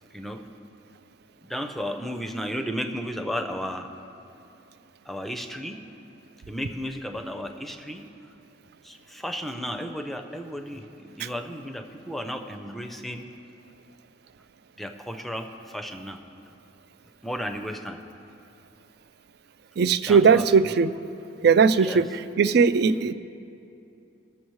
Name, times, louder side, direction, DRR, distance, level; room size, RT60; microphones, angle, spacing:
voice 1, 1.4-3.9 5.1-5.8 6.5-8.1 8.8-13.3 14.8-16.2 17.2-18.0 20.0-20.8 21.8-22.0, equal, ahead, 5 dB, 0.5 m, -34 dB
voice 2, 19.8-20.9 21.4-23.1, right 5 dB, 60° right, 13 dB, 0.4 m, -19 dB
21.5 x 7.1 x 3.1 m, 2.7 s
head